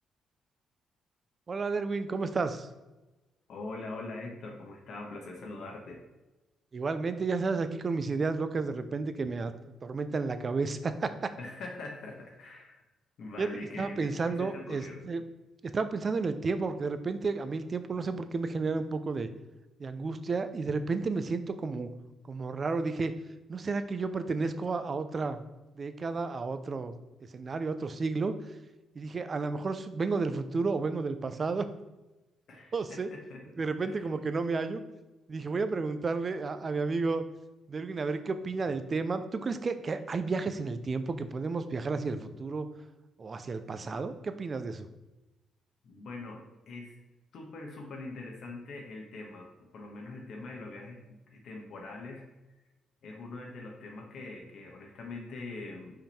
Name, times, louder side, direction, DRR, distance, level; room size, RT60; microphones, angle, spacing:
voice 1, 1.5-2.7 6.7-11.3 13.4-13.5 13.8-15.2 15.6-19.3 19.8-21.9 22.3-23.1 23.5-25.4 25.7-26.9 27.3-28.4 28.9-31.7 32.7-33.1 33.6-34.8 35.3-37.2 37.7-42.7 43.2-44.9, right 4 dB, 40° right, 10 dB, 0.6 m, -32 dB
voice 2, 3.5-6.0 11.4-12.8 13.2-15.0 32.5-33.4 33.8-34.1 45.8-47.0 47.3-52.2 53.0-56.0, left 2 dB, 65° left, 1 dB, 1.2 m, -43 dB
5.7 x 5.2 x 4.3 m, 1.1 s
cardioid pair, 90°, 0 cm